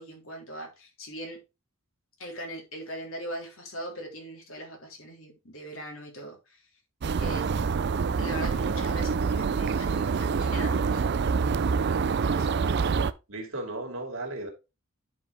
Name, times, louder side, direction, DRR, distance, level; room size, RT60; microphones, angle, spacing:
voice 1, 0.0-1.4 2.2-6.7 7.2-7.5 8.2-11.6, equal, 70° left, 3.2 m, -40 dB
sound 1, 7.0-13.1, right 5 dB, 50° right, 0.4 m, -26 dB
voice 2, 13.3-14.5, right 2 dB, 65° right, 2.5 m, -35 dB
10.5 x 4.9 x 3.3 m
head